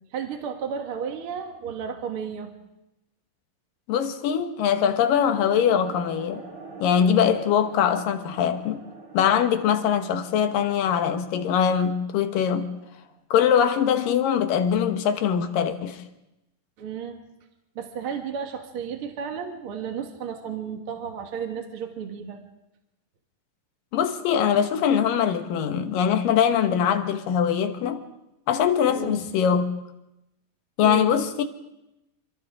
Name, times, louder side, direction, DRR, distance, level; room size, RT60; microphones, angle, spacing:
voice 1, 0.1-2.5 16.8-17.2 17.8-22.4 28.9-29.2 30.8-31.2, right 7 dB, 50° right, 2.1 m, -33 dB
voice 2, 3.9-6.4 6.8-8.8 9.1-12.7 13.3-16.0 23.9-28.1 28.5-29.6 30.8-31.4, left 8 dB, 80° left, 2.9 m, -22 dB
sound 1, 5.3-13.2, right 3 dB, 80° right, 5.4 m, -45 dB
28.5 x 27.0 x 3.8 m
omnidirectional pair, 3.9 m